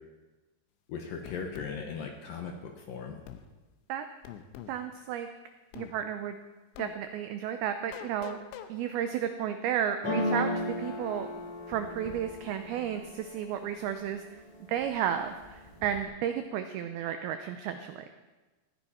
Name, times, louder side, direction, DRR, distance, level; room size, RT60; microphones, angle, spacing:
voice 1, 0.9-3.2, left 5 dB, 70° left, 3 dB, 2.3 m, -38 dB
sound 1, 1.3-1.7 3.3-3.5 4.2-4.8 5.7-5.9 6.8-6.9 7.9-8.7, left 11 dB, 85° left, 3.2 m, -43 dB
voice 2, 4.7-5.3 5.8-6.4 6.8-8.4 8.7-10.5 10.8-11.3 11.7-14.2 14.7-18.1, right 9 dB, 85° right, 8 dB, 2.2 m, -32 dB
sound 2, 10.0-13.9 14.4-15.0 15.3-16.0, left 1 dB, 5° left, 3.2 m, -35 dB
19.0 x 15.0 x 4.4 m, 1.2 s
omnidirectional pair, 5.3 m